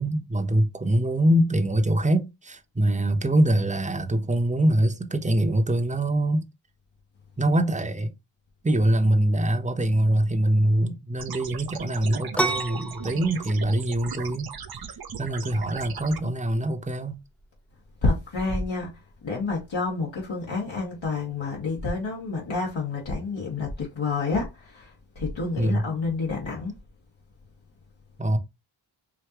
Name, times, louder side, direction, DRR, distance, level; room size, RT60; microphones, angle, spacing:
voice 1, 0.0-6.5 7.4-8.1 8.6-14.5 15.2-17.2 25.6-25.9 28.2-28.4, right 1 dB, 15° right, 0.9 m, -23 dB
sound 1, 11.2-16.2, right 7 dB, 50° right, 0.6 m, -38 dB
sound 2, 12.3-19.7, right 2 dB, 5° left, 0.5 m, -35 dB
voice 2, 18.0-18.9 19.2-26.7, left 3 dB, 65° left, 1.7 m, -29 dB
4.9 x 2.8 x 3.0 m
cardioid pair, 50°, 48 cm